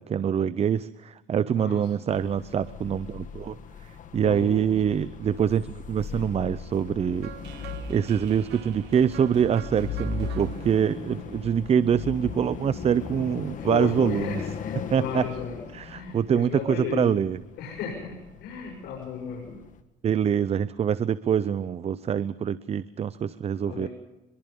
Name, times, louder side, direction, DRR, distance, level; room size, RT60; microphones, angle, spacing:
voice 1, 0.0-3.6 4.1-7.3 7.9-14.4 14.9-15.2 15.7-17.4 20.0-23.9, right 8 dB, 40° right, 16 dB, 0.7 m, -25 dB
voice 2, 1.6-2.1 4.2-4.7 13.6-17.3 17.6-19.6 23.6-23.9, left 6 dB, 75° left, -3 dB, 6.8 m, -35 dB
sound 1, 2.1-19.8, left 5 dB, 50° left, 2.0 m, -38 dB
sound 2, 7.2-12.2, right 11 dB, 85° right, 1.2 m, -45 dB
24.5 x 23.0 x 5.3 m, 1.0 s
cardioid pair, 110°, 17 cm